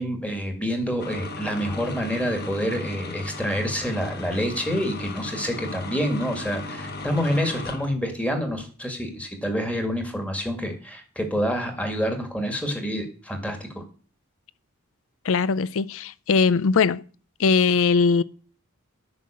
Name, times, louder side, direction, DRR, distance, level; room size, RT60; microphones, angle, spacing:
voice 1, 0.0-13.8, equal, 5° left, 1.9 m, -27 dB
sound 1, 1.0-7.9, left 2 dB, 50° left, 1.3 m, -36 dB
voice 2, 15.2-17.0 17.4-18.2, left 5 dB, 70° left, 0.5 m, -20 dB
9.2 x 5.9 x 7.4 m
head